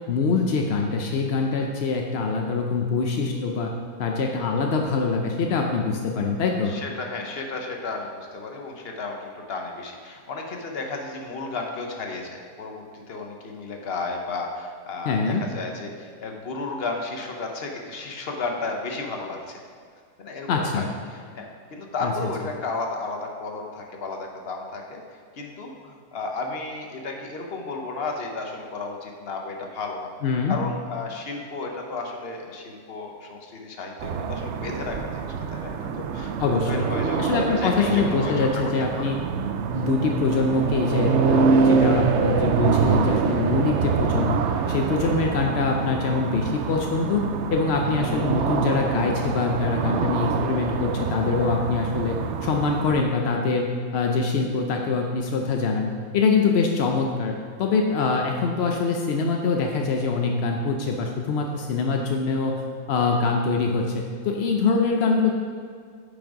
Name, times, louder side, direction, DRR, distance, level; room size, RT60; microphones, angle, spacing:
voice 1, 0.1-3.7 4.0-6.7 15.1-15.4 20.5-20.8 22.0-22.1 30.2-30.6 36.4-36.8 37.2-39.2 39.7-44.4 44.7-47.3 47.5-57.3 57.6-62.6 62.9-65.3, left 4 dB, 65° left, 2 dB, 0.6 m, -24 dB
voice 2, 6.6-19.6 20.2-30.1 30.5-38.7 39.0-39.1 45.0-45.2 47.8-48.0, left 3 dB, 45° left, 2 dB, 1.0 m, -33 dB
sound 1, 34.0-53.0, right 5 dB, 75° right, 0.6 m, -25 dB
9.0 x 5.3 x 4.8 m, 2.1 s
omnidirectional pair, 1.8 m